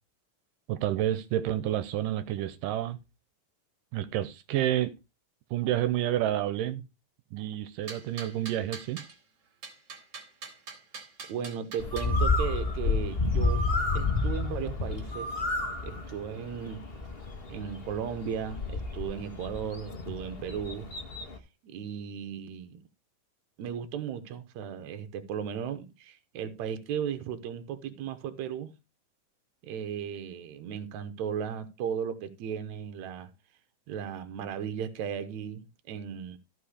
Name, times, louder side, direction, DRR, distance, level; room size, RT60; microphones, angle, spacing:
voice 1, 0.7-3.0 3.9-4.9 5.5-6.8 7.3-9.0, right 12 dB, 85° right, 2.4 m, -29 dB
sound 1, 7.9-9.1 9.6-12.1, right 4 dB, 40° right, 2.9 m, -43 dB
voice 2, 11.3-15.3 15.8-16.8 17.5-20.9 21.6-22.8 23.6-28.8 29.6-33.3 33.9-36.4, right 8 dB, 70° right, 2.2 m, -36 dB
Bird, 11.8-21.4, left 3 dB, 80° left, 0.5 m, -31 dB
14.0 x 5.3 x 5.0 m
omnidirectional pair, 3.8 m